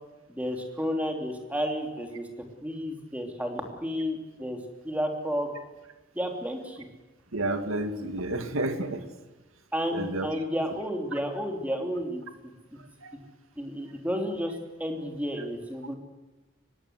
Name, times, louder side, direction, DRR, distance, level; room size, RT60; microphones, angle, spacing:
voice 1, 0.3-2.3 2.6-4.6 4.8-5.5 6.1-6.9 9.7-12.2 13.6-14.5 14.8-16.0, equal, 5° right, 3 dB, 3.0 m, -31 dB
voice 2, 7.3-9.0 9.9-10.3 13.0-13.2, right 2 dB, 85° right, 7 dB, 2.5 m, -30 dB
24.5 x 20.0 x 8.1 m, 1.1 s
head